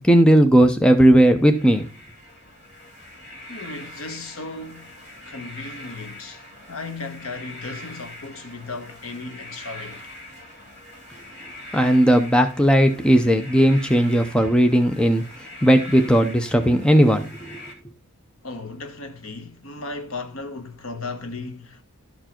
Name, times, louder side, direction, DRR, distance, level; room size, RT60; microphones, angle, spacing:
voice 1, 0.0-1.9 11.7-15.2 15.6-17.6, equal, 5° left, 0.6 m, -16 dB
sound 1, 1.2-17.7, left 1 dB, 50° left, 2.6 m, -42 dB
voice 2, 3.5-4.9 5.2-6.4 6.7-10.1 18.4-21.8, left 3 dB, 65° left, 1.3 m, -35 dB
12.0 x 4.6 x 4.4 m
head